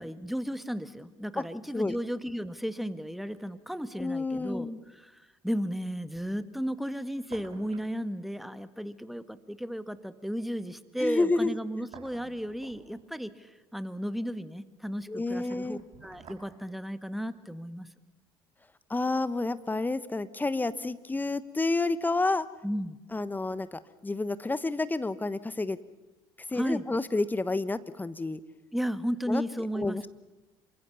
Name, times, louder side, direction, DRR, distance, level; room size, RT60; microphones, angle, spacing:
voice 1, 0.0-17.9 22.6-23.0 26.5-26.8 28.7-30.0, equal, ahead, 12 dB, 1.5 m, -34 dB
voice 2, 4.0-4.8 11.0-11.6 15.1-15.8 18.9-22.5 23.1-25.8 26.5-28.4 29.3-29.4 29.7-30.1, left 2 dB, 15° left, 15 dB, 1.2 m, -29 dB
sound 1, 7.0-8.0 8.2-8.3 11.5-13.3 15.0-16.5 16.8-16.9, right 6 dB, 50° right, 4.8 m, -52 dB
26.5 x 24.0 x 7.1 m, 1.1 s
hypercardioid pair, 65°, 12 cm